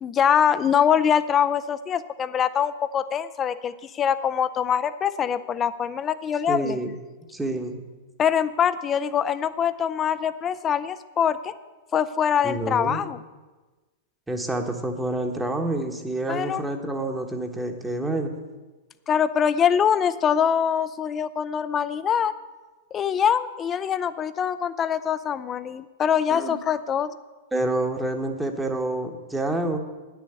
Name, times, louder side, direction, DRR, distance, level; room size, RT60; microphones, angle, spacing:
voice 1, 0.0-6.8 8.2-11.5 11.9-13.2 16.3-16.6 19.1-22.3 22.9-27.1, left 8 dB, 25° left, 13 dB, 0.6 m, -23 dB
voice 2, 6.5-6.9 7.3-7.9 12.4-13.1 14.3-18.3 26.3-26.6 27.5-29.8, right 2 dB, 10° right, 4 dB, 1.3 m, -28 dB
9.8 x 7.1 x 8.0 m, 1.2 s
hypercardioid pair, 105°, 0 cm